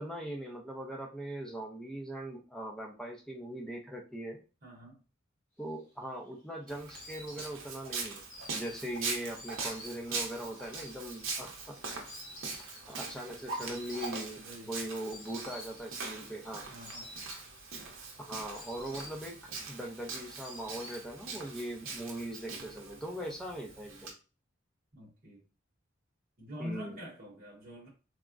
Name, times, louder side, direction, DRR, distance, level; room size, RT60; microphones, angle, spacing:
voice 1, 0.0-4.4 5.6-8.2 8.5-11.8 12.9-14.4 14.7-16.6 18.2-19.4 19.7-24.1 26.6-27.0, right 1 dB, 5° left, 0.5 m, -40 dB
voice 2, 4.6-5.0 14.4-14.7 16.7-17.2 24.9-25.4 26.4-27.9, left 1 dB, 45° right, 0.9 m, -45 dB
Insect, 5.8-21.5 21.8-22.6, left 1 dB, 40° left, 1.1 m, -52 dB
Walk footsteps, 6.7-24.1, right 4 dB, 70° right, 0.7 m, -42 dB
3.5 x 2.1 x 2.4 m
head